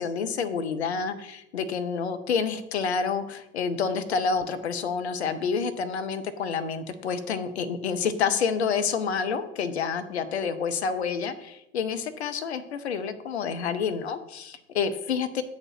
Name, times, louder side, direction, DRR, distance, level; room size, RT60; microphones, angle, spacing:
voice 1, 0.0-15.4, left 6 dB, 80° left, 10 dB, 0.7 m, -28 dB
8.0 x 4.2 x 5.8 m, 0.83 s
figure-of-eight pair, 60°, 32 cm